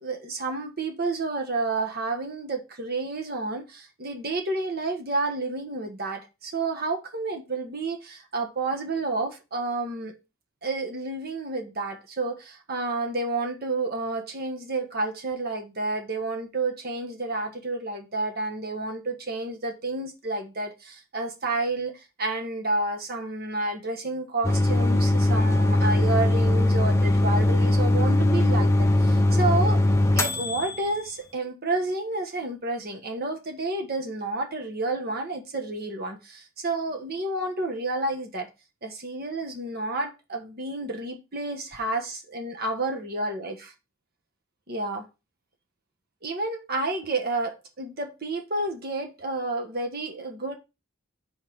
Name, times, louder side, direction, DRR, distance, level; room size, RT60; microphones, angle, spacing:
voice 1, 0.0-10.1 10.6-29.8 30.1-38.5 38.8-43.6 44.7-45.0 46.2-50.6, right 2 dB, 45° right, 1.3 m, -30 dB
sound 1, 24.4-31.0, left 1 dB, 15° left, 0.7 m, -21 dB
5.8 x 4.1 x 6.2 m
head